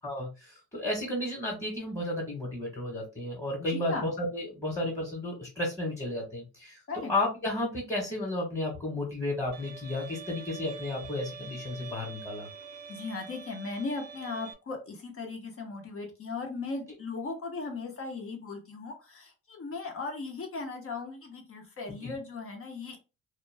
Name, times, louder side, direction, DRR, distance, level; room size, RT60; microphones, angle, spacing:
voice 1, 0.0-12.5 22.0-22.1, left 1 dB, 10° left, -2 dB, 1.2 m, -33 dB
voice 2, 3.7-4.1 6.9-7.1 12.9-23.0, left 3 dB, 50° left, 3 dB, 0.9 m, -37 dB
Bowed string instrument, 9.5-14.5, right 5 dB, 65° right, 0.6 m, -45 dB
2.3 x 2.2 x 3.3 m, 0.30 s
cardioid pair, 90°, 30 cm